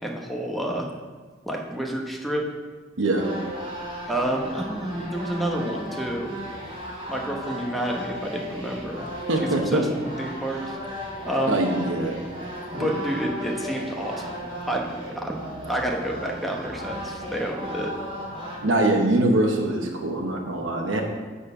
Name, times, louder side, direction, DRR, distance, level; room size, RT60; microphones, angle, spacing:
voice 1, 0.0-0.9 1.5-2.4 4.1-6.4 7.1-9.1 9.4-9.9 10.2-10.8 11.3-11.6 12.7-15.3 15.7-17.9, right 1 dB, ahead, 0 dB, 1.0 m, -29 dB
voice 2, 3.0-3.3 9.3-9.8 11.5-12.2 12.7-12.9 18.6-21.0, right 1 dB, 75° right, 1 dB, 1.1 m, -23 dB
sound 1, 3.2-18.6, equal, 30° right, 3.0 m, -35 dB
10.0 x 4.3 x 7.1 m, 1.5 s
head